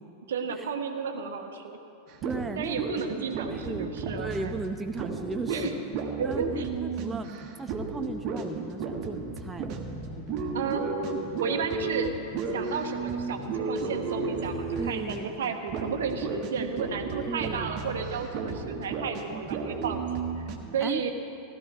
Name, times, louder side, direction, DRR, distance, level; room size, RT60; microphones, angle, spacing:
voice 1, 0.3-1.8 2.6-4.6 5.5-5.7 6.2-6.7 10.5-11.0 11.4-12.1 12.5-20.4 20.7-21.1, right 6 dB, 60° right, 5 dB, 1.2 m, -33 dB
sound 1, 2.1-15.4 15.7-20.6, right 4 dB, 40° right, 1.4 m, -33 dB
voice 2, 2.2-2.8 3.5-5.8 6.2-7.3 7.6-9.8 14.8-15.5 17.2-17.7 20.8-21.1, right 3 dB, 10° right, 6 dB, 0.5 m, -36 dB
Race car auto racing / Alarm, 9.0-15.2, left 9 dB, 30° left, 0.8 m, -47 dB
16.5 x 12.5 x 4.6 m, 2.7 s
figure-of-eight pair, 90°, 0 cm